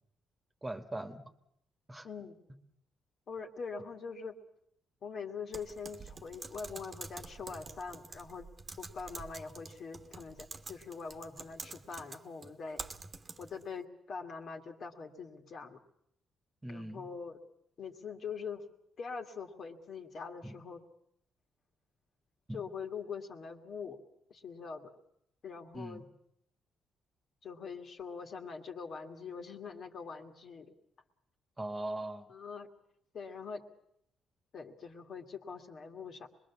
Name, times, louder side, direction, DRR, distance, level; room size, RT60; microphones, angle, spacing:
voice 1, 0.6-1.3 1.9-2.1 16.6-17.1 20.4-20.6 22.5-22.6 25.7-26.1 31.6-32.3, right 1 dB, 15° right, 6 dB, 1.6 m, -40 dB
voice 2, 2.0-2.4 3.3-4.4 5.0-8.5 8.8-12.8 13.4-15.8 16.7-17.4 17.8-18.7 19.0-20.8 22.5-24.0 24.3-24.9 25.4-26.0 27.4-30.7 32.3-32.7 33.1-33.6 34.5-36.3, left 5 dB, 55° left, 3 dB, 2.2 m, -43 dB
Typing, 5.5-13.6, right 4 dB, 35° right, 1.3 m, -47 dB
25.0 x 21.0 x 7.2 m, 0.75 s
cardioid pair, 90°, 0 cm